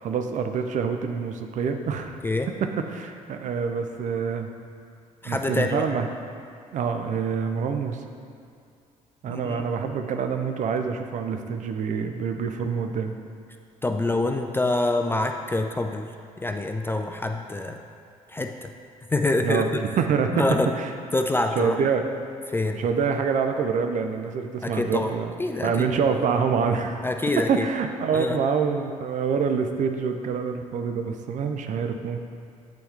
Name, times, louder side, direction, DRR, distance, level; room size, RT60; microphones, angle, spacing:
voice 1, 0.0-2.2 2.6-4.5 5.3-6.1 6.7-8.0 9.2-13.1 19.4-20.5 20.7-20.9 21.6-22.1 22.7-25.3 25.6-27.1 27.5-32.2, right 6 dB, 40° right, 6 dB, 0.5 m, -26 dB
voice 2, 5.2-5.9 9.3-9.6 13.8-16.1 16.4-17.8 18.3-18.7 19.1-19.6 20.3-20.7 21.1-21.7 22.5-22.8 24.6-25.1 25.4-25.9 27.0-27.7 28.1-28.4, left 2 dB, 10° left, 4 dB, 0.3 m, -26 dB
8.1 x 4.3 x 3.5 m, 2.4 s
figure-of-eight pair, 45°, 19 cm